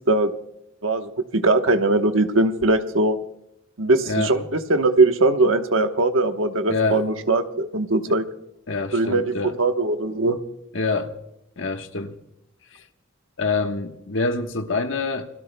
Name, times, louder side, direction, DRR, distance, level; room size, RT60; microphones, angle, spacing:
voice 1, 0.8-3.2 3.8-8.2 8.9-10.4, right 2 dB, 75° right, 1.1 m, -20 dB
voice 2, 6.7-7.0 8.1-8.2 8.7-9.5 10.7-11.1 11.6-12.2 13.4-15.3, left 3 dB, 65° left, 1.2 m, -26 dB
29.0 x 21.0 x 2.2 m
head